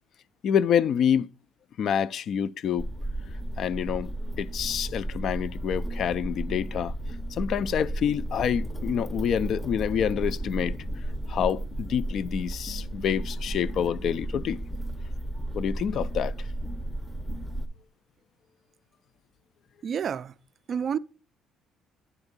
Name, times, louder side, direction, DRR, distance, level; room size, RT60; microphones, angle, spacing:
voice 1, 0.4-1.3 1.8-2.9 3.6-4.1 4.4-6.9 7.3-10.7 11.3-14.6 15.5-16.3, left 8 dB, 50° left, 0.3 m, -27 dB
sound 1, 2.8-17.7, right 1 dB, 15° left, 0.6 m, -33 dB
voice 2, 19.8-20.3 20.7-21.0, right 7 dB, 40° right, 0.3 m, -29 dB
9.7 x 3.5 x 6.6 m
cardioid pair, 135°, 0 cm